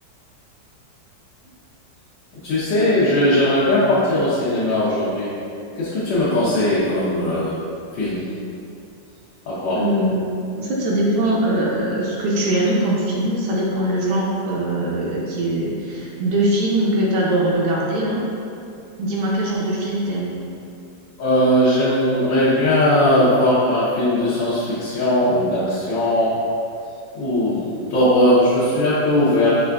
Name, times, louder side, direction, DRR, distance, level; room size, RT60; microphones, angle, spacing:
voice 1, 2.4-5.3 5.7-7.5 7.9-8.2 9.5-9.8 21.2-26.4 27.1-29.6, left 1 dB, 75° left, -11 dB, 1.4 m, -19 dB
voice 2, 9.7-10.2 10.5-18.2 19.0-20.3, right 1 dB, 70° right, -4 dB, 1.0 m, -21 dB
5.3 x 2.4 x 2.2 m, 2.5 s
omnidirectional pair, 2.0 m